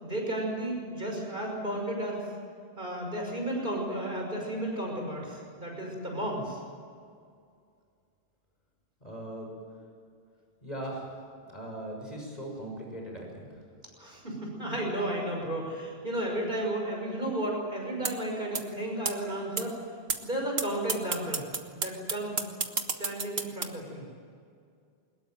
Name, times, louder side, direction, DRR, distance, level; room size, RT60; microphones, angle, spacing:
voice 1, 0.0-2.3 2.8-6.6 14.0-19.7 20.2-21.4 21.7-22.4 23.0-24.0, right 1 dB, 50° right, 0 dB, 6.2 m, -33 dB
voice 2, 9.0-9.5 10.6-11.1 11.5-13.5, right 1 dB, 40° left, 0 dB, 6.7 m, -39 dB
sound 1, 18.1-18.2 18.5-18.6 19.1-19.2 19.6-19.7 20.1-20.2 20.6-20.7 20.9-23.6, right 5 dB, 70° right, 1.7 m, -29 dB
22.0 x 20.5 x 9.3 m, 2.3 s
omnidirectional pair, 1.1 m